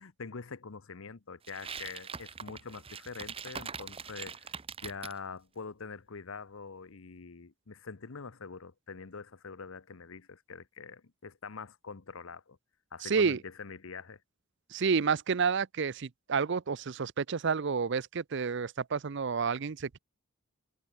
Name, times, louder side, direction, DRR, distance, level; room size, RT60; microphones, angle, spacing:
voice 1, 0.0-4.5 4.8-12.6 12.9-14.2, left 5 dB, 75° left, 0.9 m, -44 dB
sound 1, 1.4-5.2, right 6 dB, 25° right, 0.9 m, -42 dB
voice 2, 13.0-13.4 14.7-20.0, right 5 dB, 55° right, 0.6 m, -30 dB
head